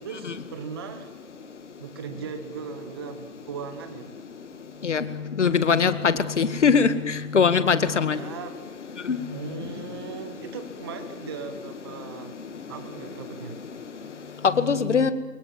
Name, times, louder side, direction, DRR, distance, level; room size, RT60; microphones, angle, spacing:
voice 1, 0.0-1.1 1.8-4.1 7.8-8.5 9.3-12.3 12.7-13.6, right 6 dB, 15° right, 10 dB, 1.0 m, -38 dB
voice 2, 5.4-8.2 9.1-9.2 14.6-15.1, left 6 dB, 50° left, 13 dB, 2.0 m, -21 dB
28.0 x 22.5 x 7.5 m, 1.2 s
figure-of-eight pair, 150°, 47 cm